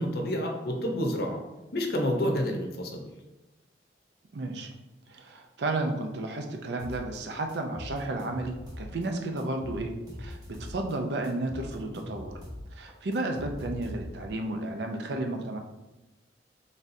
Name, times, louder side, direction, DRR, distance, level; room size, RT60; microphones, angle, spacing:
voice 1, 0.0-1.4 1.7-3.0, equal, 60° left, 2 dB, 0.7 m, -29 dB
voice 2, 4.3-4.7 5.1-12.3 12.7-15.6, right 2 dB, 70° right, 4 dB, 0.5 m, -32 dB
sound 1, 6.8-7.2 7.5-9.1 9.4-10.9 11.2-14.3, equal, 20° right, 0.9 m, -41 dB
4.1 x 3.5 x 2.6 m, 1.1 s
head